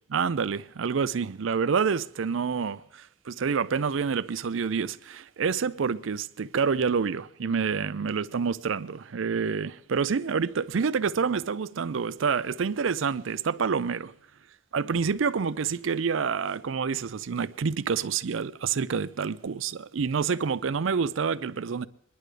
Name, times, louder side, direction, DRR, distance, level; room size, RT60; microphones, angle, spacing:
voice 1, 0.1-14.1 14.7-21.9, right 5 dB, 80° right, 0.5 m, -28 dB
23.0 x 11.0 x 3.3 m
head